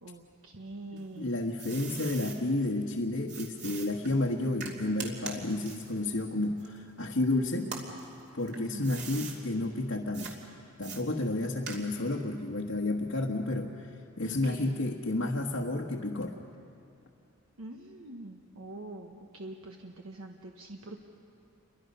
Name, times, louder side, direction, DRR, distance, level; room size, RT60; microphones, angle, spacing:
voice 1, 0.0-1.3 8.5-8.9 14.2-14.7 17.6-21.0, right 2 dB, 70° right, 2 dB, 1.3 m, -44 dB
voice 2, 0.9-7.7 8.3-10.3 10.8-13.9 14.2-16.4, left 2 dB, 70° left, -1 dB, 1.5 m, -31 dB
sound 1, 1.0-2.4 3.3-7.2 7.6-9.4 10.1-10.4 10.8-12.1, right 5 dB, 50° right, 2.9 m, -43 dB
29.0 x 24.0 x 5.5 m, 2.6 s
head